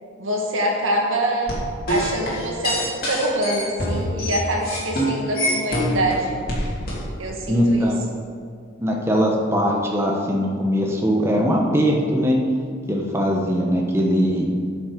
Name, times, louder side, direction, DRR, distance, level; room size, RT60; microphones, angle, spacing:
voice 1, 0.2-1.6 1.9-6.4 7.2-7.9, right 1 dB, 90° right, 0 dB, 1.8 m, -25 dB
sound 1, 1.5-6.1 6.5-7.0, equal, 50° left, 2.6 m, -25 dB
voice 2, 7.5-8.0 8.8-12.4 12.9-14.5, equal, 15° right, -1 dB, 0.9 m, -20 dB
12.5 x 6.0 x 5.1 m, 2.2 s
head